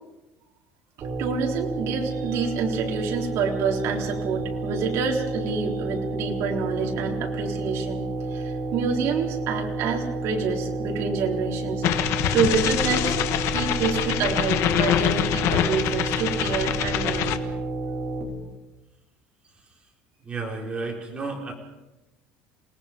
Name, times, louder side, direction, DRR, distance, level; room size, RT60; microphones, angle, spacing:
sound 1, 1.0-18.2, right 2 dB, 35° right, 4.5 m, -30 dB
voice 1, 1.0-8.0 8.3-11.8 12.3-13.1 13.5-17.4, right 5 dB, 55° right, 1 dB, 3.9 m, -27 dB
sound 2, 11.8-17.4, left 11 dB, 55° left, 1.4 m, -25 dB
voice 2, 20.2-21.5, right 3 dB, 20° right, 0 dB, 4.7 m, -32 dB
28.0 x 19.5 x 5.3 m, 1.0 s
cardioid pair, 150°, 6 cm